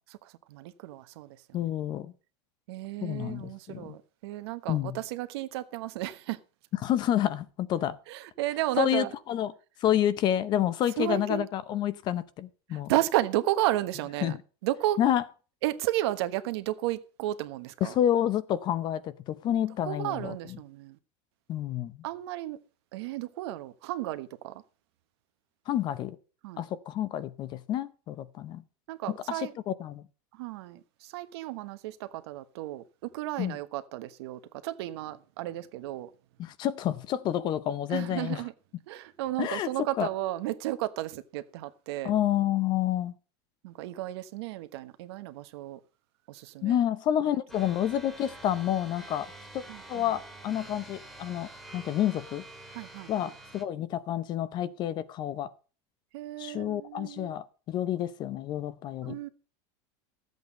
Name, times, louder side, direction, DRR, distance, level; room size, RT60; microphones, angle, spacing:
voice 1, 0.5-1.4 2.7-6.4 8.1-9.1 11.0-11.5 12.7-14.4 14.6-15.0 15.6-17.9 19.9-21.0 22.0-22.6 22.9-24.6 26.4-26.6 28.9-29.5 30.3-32.8 33.1-36.1 37.9-38.5 38.9-42.1 43.6-45.8 46.3-46.8 49.7-50.0 52.7-53.1 56.1-57.3 59.0-59.3, right 15 dB, 70° right, 1.2 m, -33 dB
voice 2, 1.5-2.1 3.0-4.0 4.7-5.0 6.8-8.0 8.8-9.5 9.8-12.9 14.2-14.4 15.0-15.2 17.8-20.6 21.5-22.0 25.7-26.2 26.6-28.6 29.1-30.0 33.4-33.6 36.4-38.4 39.4-39.7 40.0-40.1 42.0-43.1 46.6-49.6 49.9-52.4 53.1-55.5 56.4-59.2, left 11 dB, 30° left, 0.7 m, -29 dB
sound 1, 47.5-53.6, right 2 dB, ahead, 1.9 m, -47 dB
13.5 x 8.1 x 5.3 m
supercardioid pair, 165°, 14 cm